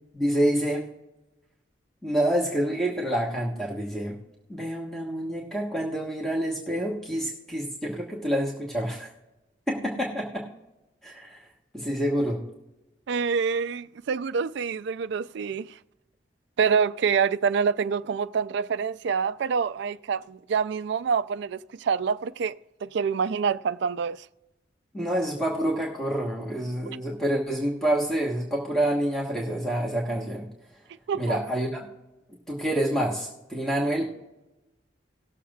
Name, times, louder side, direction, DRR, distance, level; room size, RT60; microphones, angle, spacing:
voice 1, 0.1-0.8 2.0-4.2 4.5-9.1 9.7-10.5 11.0-11.4 11.7-12.4 24.9-30.5 31.1-31.9 32.5-34.0, right 1 dB, ahead, 1.2 m, -27 dB
voice 2, 13.1-15.7 16.6-22.6 22.8-24.3 31.1-31.4, right 6 dB, 60° right, 0.3 m, -26 dB
19.0 x 7.1 x 2.4 m
head